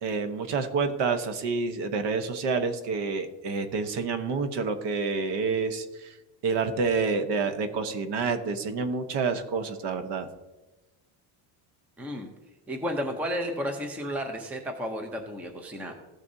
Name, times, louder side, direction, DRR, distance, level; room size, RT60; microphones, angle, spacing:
voice 1, 0.0-6.1 6.4-10.3, right 4 dB, 55° right, 8 dB, 1.0 m, -28 dB
voice 2, 12.0-12.3 12.7-15.9, equal, 5° right, 4 dB, 0.5 m, -32 dB
15.5 x 6.5 x 2.7 m, 1.1 s
cardioid pair, 165°, 49 cm